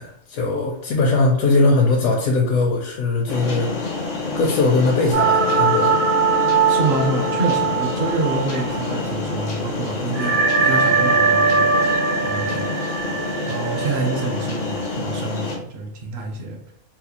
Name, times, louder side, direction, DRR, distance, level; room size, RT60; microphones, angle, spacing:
voice 1, 0.0-3.7 4.3-5.9, left 3 dB, 80° left, -1 dB, 1.0 m, -20 dB
sound 1, 3.3-15.6, left 3 dB, 60° left, 0.4 m, -27 dB
sound 2, 5.1-9.1 9.4-9.5 10.1-14.8, right 4 dB, 85° right, 1.2 m, -21 dB
voice 2, 6.7-12.7 13.0-13.2 13.5-16.6, right 3 dB, 55° right, 2 dB, 0.9 m, -27 dB
4.0 x 2.3 x 2.8 m, 0.70 s
omnidirectional pair, 1.4 m